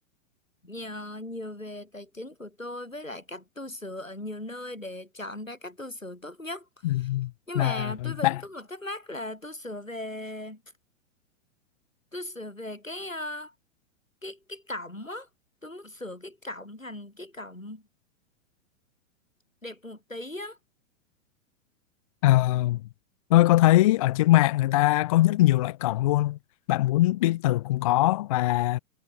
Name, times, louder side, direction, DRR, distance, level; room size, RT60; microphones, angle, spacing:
voice 1, 0.6-7.1 7.5-10.6 12.1-13.5 14.2-15.3 15.6-17.8 19.6-20.6, left 1 dB, 85° left, 5.7 m, -38 dB
voice 2, 6.8-7.3 7.6-8.4 22.2-22.8 23.3-26.4 26.7-28.8, left 16 dB, 30° left, 0.4 m, -22 dB
figure-of-eight pair, 105°, 38 cm